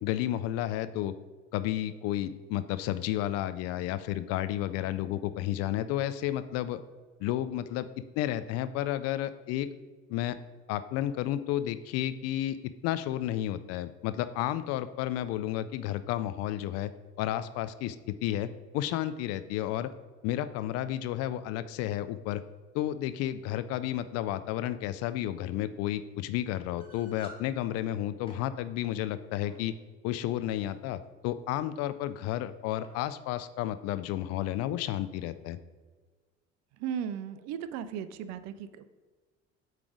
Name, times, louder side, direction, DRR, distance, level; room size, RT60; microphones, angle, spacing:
voice 1, 0.0-1.1 1.5-6.8 7.2-7.9 8.2-9.7 10.1-10.4 10.7-12.6 12.8-16.9 17.2-19.9 20.2-22.4 22.7-29.7 30.0-35.6, left 13 dB, 45° left, 13 dB, 0.4 m, -32 dB
sound 1, 26.8-27.4 28.1-28.4 29.5-29.7 30.3-30.7 31.6-31.7 32.0-32.1 32.8-33.0, left 1 dB, 15° left, 1.4 m, -51 dB
voice 2, 36.8-38.8, right 8 dB, 50° right, 13 dB, 0.5 m, -36 dB
8.4 x 3.2 x 4.9 m, 1.4 s
figure-of-eight pair, 60°, 37 cm